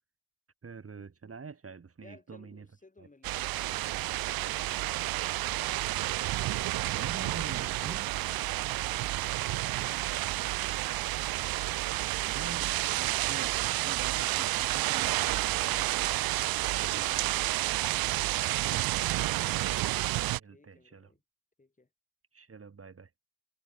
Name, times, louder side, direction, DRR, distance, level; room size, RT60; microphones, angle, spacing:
voice 1, 0.6-2.7 3.0-3.1 6.9-8.1 12.3-16.2 16.7-17.4 20.3-21.1 22.3-23.1, right 5 dB, 35° right, 4.0 m, -46 dB
voice 2, 2.0-5.3 7.0-11.1 17.1-17.7 18.1-19.1 20.5-21.2 21.6-21.9, left 3 dB, 20° left, 5.0 m, -59 dB
sound 1, 3.2-20.4, right 17 dB, 60° right, 0.5 m, -30 dB
cardioid pair, 80°, 41 cm